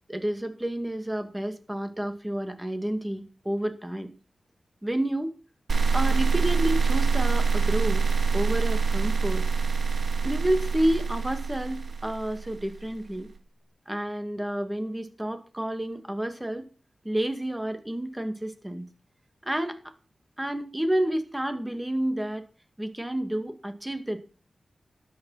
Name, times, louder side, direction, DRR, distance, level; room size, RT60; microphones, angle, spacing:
voice 1, 0.1-4.1 4.8-5.3 5.9-8.0 8.3-9.5 10.2-13.3 13.9-16.7 17.0-18.9 19.4-19.8 20.4-22.4 22.8-24.2, right 1 dB, 10° right, 8 dB, 2.3 m, -30 dB
sound 1, 5.7-12.8, right 5 dB, 65° right, 1.8 m, -25 dB
12.5 x 10.0 x 5.8 m, 0.35 s
wide cardioid pair, 75°, 0 cm